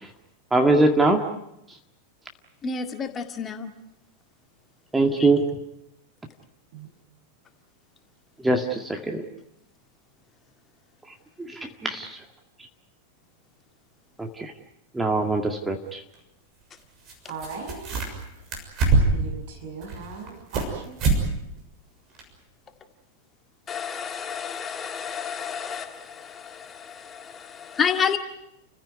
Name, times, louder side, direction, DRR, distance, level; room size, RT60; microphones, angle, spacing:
voice 1, 0.5-1.2 4.9-5.4 8.4-9.2 11.8-12.1 14.2-14.5 14.9-16.0, right 2 dB, 10° right, 3 dB, 2.0 m, -22 dB
voice 2, 2.6-3.7 5.2-5.3 23.7-28.2, left 6 dB, 20° left, 7 dB, 2.0 m, -30 dB
sound 1, 17.1-17.2 17.4-18.2 18.5-19.3 19.8-20.7 21.0-21.2 21.6-21.7 22.2-22.3, right 3 dB, 35° right, 6.7 m, -23 dB
voice 3, 17.3-17.8 19.1-21.0, right 5 dB, 55° right, 1 dB, 7.7 m, -38 dB
29.5 x 15.5 x 9.7 m, 0.86 s
figure-of-eight pair, 90°, 0 cm